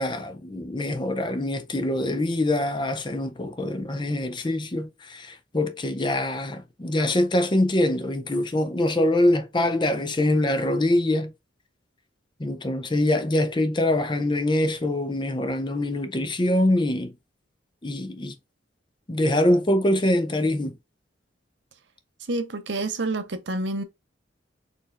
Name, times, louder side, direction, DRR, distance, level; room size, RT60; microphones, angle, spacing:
voice 1, 0.0-11.3 12.4-17.1 17.8-18.4 19.1-20.8, left 1 dB, 25° left, 0.5 m, -24 dB
voice 2, 22.3-23.8, right 2 dB, 70° right, 0.8 m, -28 dB
4.4 x 3.2 x 2.4 m
head